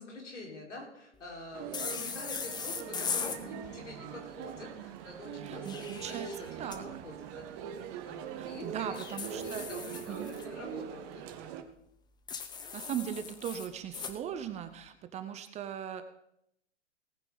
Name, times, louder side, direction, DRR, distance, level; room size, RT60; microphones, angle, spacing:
voice 1, 0.0-9.0 9.3-11.5, left 2 dB, 80° left, -1 dB, 4.8 m, -46 dB
Male speech man speaking, 1.5-11.6, right 9 dB, 35° right, 1.2 m, -42 dB
sound 1, 1.7-3.4 5.4-6.8 8.9-10.5 12.3-14.2, left 6 dB, 10° left, 0.8 m, -39 dB
voice 2, 5.4-6.3 6.6-6.8 8.4-9.7 10.1-10.3 12.7-16.0, right 9 dB, 20° right, 10 dB, 0.8 m, -39 dB
18.5 x 9.1 x 4.0 m, 0.75 s
hypercardioid pair, 120°, 35 cm